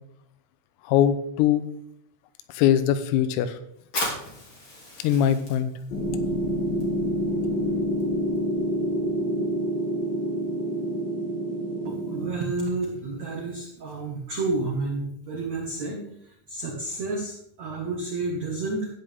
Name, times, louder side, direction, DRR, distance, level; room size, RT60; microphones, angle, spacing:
voice 1, 0.9-1.6 2.6-3.5 5.0-5.7, left 10 dB, 90° left, 11 dB, 3.6 m, -21 dB
Fire, 3.8-11.0, left 2 dB, 30° left, 2.4 m, -39 dB
sound 1, 5.9-12.3, equal, 60° left, 2.7 m, -27 dB
voice 2, 11.8-18.9, right 3 dB, 80° right, -2 dB, 1.6 m, -30 dB
13.5 x 9.0 x 3.6 m, 0.71 s
omnidirectional pair, 6.0 m